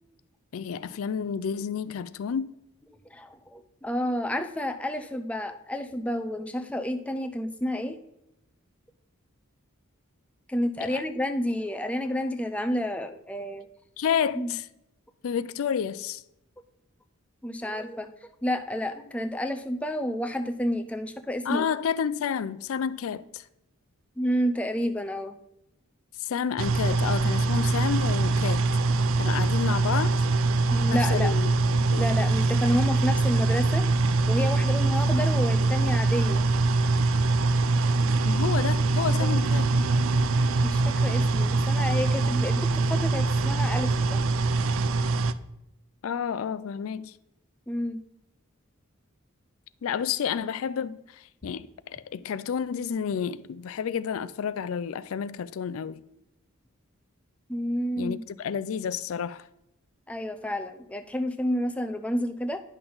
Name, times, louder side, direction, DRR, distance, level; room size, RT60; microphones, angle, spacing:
voice 1, 0.5-2.5 10.8-11.0 14.0-14.7 15.2-16.2 21.5-23.4 26.2-28.6 28.9-30.1 30.9-32.1 38.2-39.7 46.0-47.1 49.8-56.0 58.0-59.5, left 7 dB, 70° left, 0.4 m, -30 dB
voice 2, 2.9-8.0 10.5-13.7 14.3-14.5 17.4-18.1 18.4-21.7 24.2-25.4 30.7-31.3 32.0-33.8 34.3-36.4 39.2-39.4 40.6-44.2 47.7-48.0 57.5-58.2 60.1-62.6, equal, 5° left, 0.4 m, -30 dB
sound 1, 26.6-45.3, right 3 dB, 65° right, 0.4 m, -23 dB
10.0 x 5.9 x 3.9 m
head